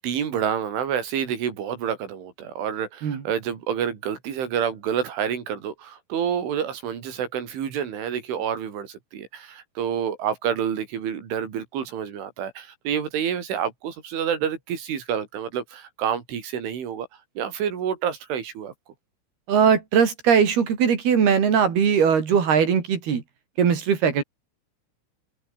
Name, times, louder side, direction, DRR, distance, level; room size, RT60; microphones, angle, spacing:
voice 1, 0.0-17.1 17.4-18.7, right 8 dB, 70° right, 6.2 m, -28 dB
voice 2, 19.5-23.2 23.6-24.2, right 7 dB, 50° right, 5.1 m, -20 dB
open air
omnidirectional pair, 5.9 m